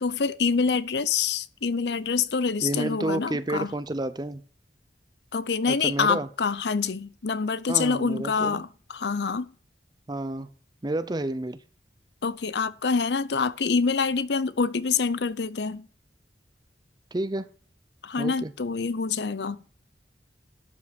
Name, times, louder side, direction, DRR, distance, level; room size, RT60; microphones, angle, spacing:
voice 1, 0.0-3.7 5.3-9.5 12.2-15.9 18.0-19.6, left 5 dB, 75° left, 0.6 m, -26 dB
voice 2, 2.6-4.4 5.7-6.3 7.7-8.6 10.1-10.5 10.8-11.6 17.1-17.5 18.2-18.5, right 1 dB, 25° right, 0.6 m, -30 dB
12.0 x 6.2 x 6.0 m
head